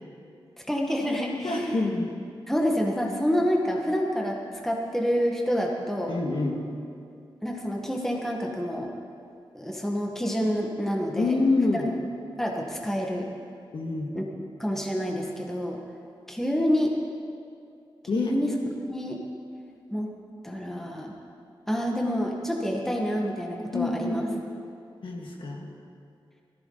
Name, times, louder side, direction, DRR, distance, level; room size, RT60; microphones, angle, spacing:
voice 1, 0.6-1.8 2.5-6.2 7.4-8.9 9.5-11.4 12.4-13.3 14.1-14.2 14.6-15.8 16.3-16.9 18.1-18.5 18.9-19.2 19.9-20.1 20.4-21.1 21.7-24.2, equal, 5° left, -1 dB, 1.5 m, -28 dB
voice 2, 1.4-2.1 6.1-6.6 11.2-11.9 13.7-14.1 18.1-18.4 23.7-24.4 25.0-25.7, left 3 dB, 65° left, 0 dB, 1.9 m, -26 dB
18.5 x 14.5 x 4.0 m, 2.4 s
wide cardioid pair, 135°, 9 cm